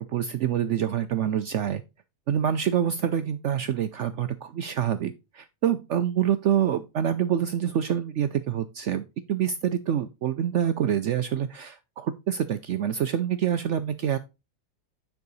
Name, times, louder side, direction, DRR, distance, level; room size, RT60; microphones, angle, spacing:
voice 1, 0.1-1.8 2.3-9.0 9.3-14.2, right 9 dB, 70° right, 11 dB, 0.7 m, -26 dB
9.5 x 4.7 x 4.0 m, 0.26 s
omnidirectional pair, 1.7 m